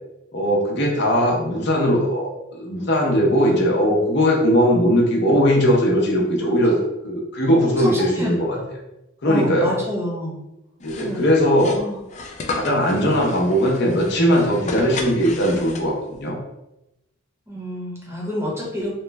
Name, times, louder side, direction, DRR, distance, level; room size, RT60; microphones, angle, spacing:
voice 1, 0.3-6.7 7.0-8.6 9.2-9.8 10.8-11.8 12.5-16.4, equal, 60° left, -1 dB, 0.8 m, -19 dB
voice 2, 7.8-8.6 9.2-10.4 11.0-11.2 11.7-12.0 14.7-14.9 17.5-18.9, equal, 15° right, -4 dB, 0.9 m, -28 dB
sound 1, 10.8-16.2, left 3 dB, 35° left, 0.3 m, -34 dB
3.1 x 2.1 x 3.3 m, 0.91 s
head